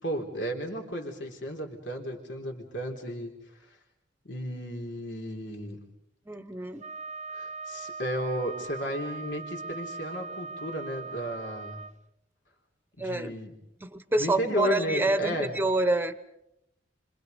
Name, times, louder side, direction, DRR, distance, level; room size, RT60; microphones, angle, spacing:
voice 1, 0.0-3.3 4.2-5.8 7.3-11.8 13.0-13.5 14.1-15.6, equal, 75° left, 2 dB, 3.8 m, -33 dB
voice 2, 6.3-6.8 13.0-13.3 13.8-16.2, right 2 dB, 10° right, 12 dB, 1.1 m, -27 dB
Wind instrument woodwind instrument, 6.8-11.9, right 4 dB, 40° right, 0.9 m, -40 dB
29.5 x 25.5 x 5.3 m, 0.79 s
head